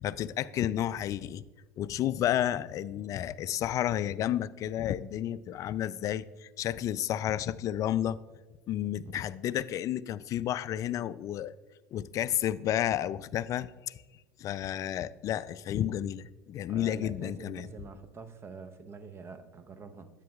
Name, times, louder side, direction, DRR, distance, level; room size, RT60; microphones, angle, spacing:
voice 1, 0.0-1.4 1.8-8.2 8.7-11.5 11.9-14.0 14.4-17.7, left 11 dB, 45° left, 17 dB, 0.3 m, -31 dB
voice 2, 16.7-20.1, right 4 dB, 30° right, 10 dB, 0.8 m, -46 dB
10.0 x 8.3 x 2.3 m, 1.2 s
hypercardioid pair, 80°, 8 cm